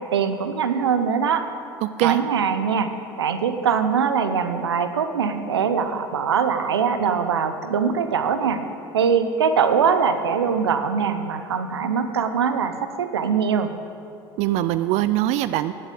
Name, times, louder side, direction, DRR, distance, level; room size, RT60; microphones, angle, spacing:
voice 1, 0.1-1.4 2.0-2.9 3.2-8.6 8.9-12.7 13.0-13.7, right 6 dB, 85° right, 9 dB, 0.8 m, -22 dB
voice 2, 1.8-2.2 14.4-15.7, right 15 dB, 60° right, 13 dB, 0.4 m, -22 dB
11.5 x 8.1 x 8.3 m, 2.6 s
hypercardioid pair, 70°, 13 cm